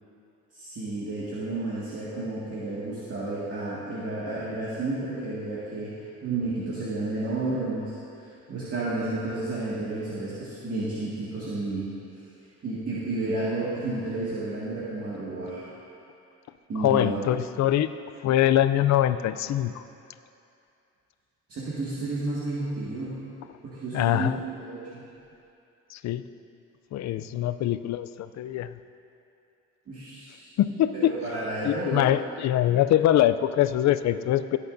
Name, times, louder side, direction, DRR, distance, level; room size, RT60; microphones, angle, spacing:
voice 1, 0.5-6.0 6.2-11.9 12.6-15.7 16.7-17.2 21.5-23.2 23.6-25.0 29.9-30.5 30.9-32.1, right 2 dB, 50° right, -9 dB, 2.0 m, -31 dB
voice 2, 16.8-17.9 18.2-19.8 23.9-24.4 25.9-26.2 26.9-28.8 30.6-31.1 31.6-34.6, left 12 dB, 65° left, 12 dB, 0.5 m, -23 dB
17.0 x 8.3 x 2.6 m, 2.6 s
cardioid pair, 90°, 30 cm